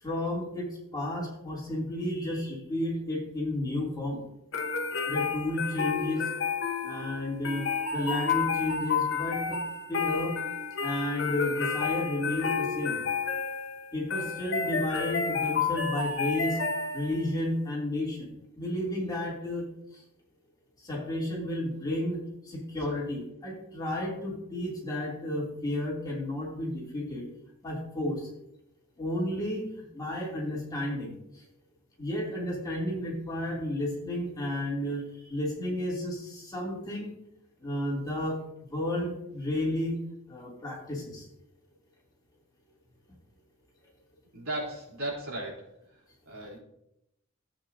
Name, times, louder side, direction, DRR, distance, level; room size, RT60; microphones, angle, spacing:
voice 1, 0.0-4.2 5.1-6.3 6.8-9.6 9.9-10.4 10.8-13.0 13.9-16.6 16.9-18.3 18.6-19.6 19.9-20.0 20.8-27.2 27.6-28.3 29.0-31.1 32.0-37.1 37.6-38.4 38.7-40.0 40.3-41.2, left 1 dB, 20° left, -4 dB, 2.9 m, -32 dB
sound 1, 4.5-17.3, left 5 dB, 60° left, 1.2 m, -31 dB
voice 2, 44.3-45.7 46.3-46.6, right 1 dB, 75° right, -3 dB, 3.8 m, -35 dB
14.5 x 8.3 x 2.8 m, 0.81 s
head